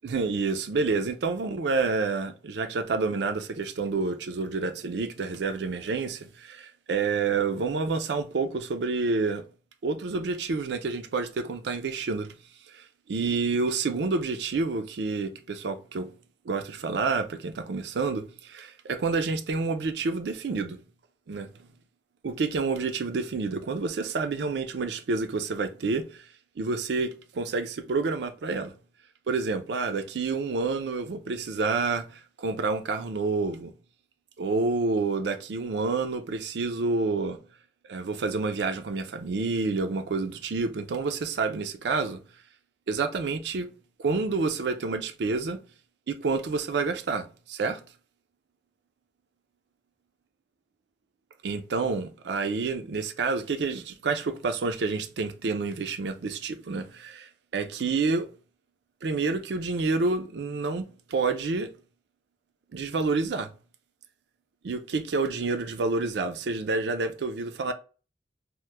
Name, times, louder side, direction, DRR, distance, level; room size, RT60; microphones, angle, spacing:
voice 1, 0.0-9.4 9.8-12.3 12.7-16.1 16.5-20.8 21.3-21.5 22.2-26.2 26.6-28.7 29.3-33.7 34.4-37.4 37.9-42.2 42.9-43.7 44.0-45.6 46.1-47.8 51.4-58.3 59.0-61.7 62.7-63.5 64.6-67.7, right 4 dB, 75° right, 0.4 m, -28 dB
2.9 x 2.1 x 3.3 m
head